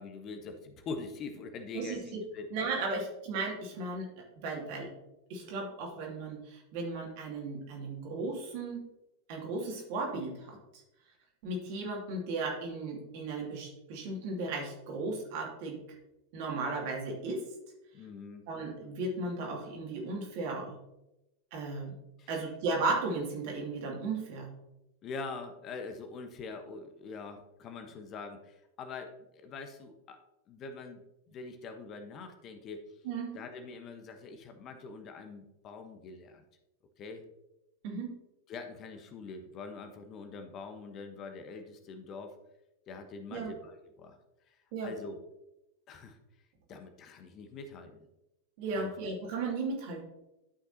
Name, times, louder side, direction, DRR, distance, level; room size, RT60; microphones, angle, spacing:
voice 1, 0.0-2.5 17.9-18.4 22.2-22.3 25.0-30.2 30.5-31.0 31.3-32.8 33.3-36.4 37.0-37.2 38.5-42.4 42.9-44.2 44.8-45.2 45.9-46.2 46.7-48.0 48.7-48.9, left 4 dB, 30° left, 7 dB, 1.1 m, -44 dB
voice 2, 1.7-2.2 2.5-4.1 4.4-4.9 5.3-8.8 9.3-10.6 11.4-15.8 16.3-17.4 18.5-20.8 21.5-21.9 22.3-24.5 33.0-33.4 37.8-38.1 43.3-43.5 44.7-44.9 48.6-50.0, right 3 dB, 45° right, -1 dB, 2.5 m, -35 dB
12.5 x 5.8 x 2.9 m, 0.92 s
figure-of-eight pair, 90°, 0 cm